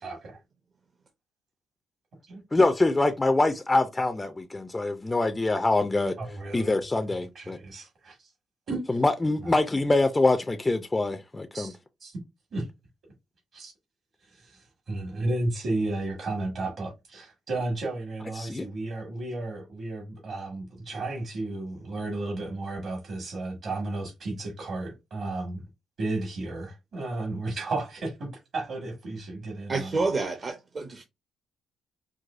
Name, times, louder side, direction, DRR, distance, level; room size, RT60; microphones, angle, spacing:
voice 1, 0.0-0.4 2.3-2.4 6.2-6.8 7.1-8.3 8.7-9.0 9.4-9.6 11.5-11.7 12.0-12.2 12.5-12.7 13.5-13.7 14.2-25.6 26.0-30.1, right 2 dB, 60° right, 1.6 m, -33 dB
voice 2, 2.5-6.2 6.5-7.6 8.9-11.7 18.4-18.7, left 2 dB, 20° left, 0.4 m, -24 dB
voice 3, 29.7-31.0, right 3 dB, 40° right, 0.6 m, -29 dB
4.7 x 2.1 x 2.5 m
cardioid pair, 90°, 0 cm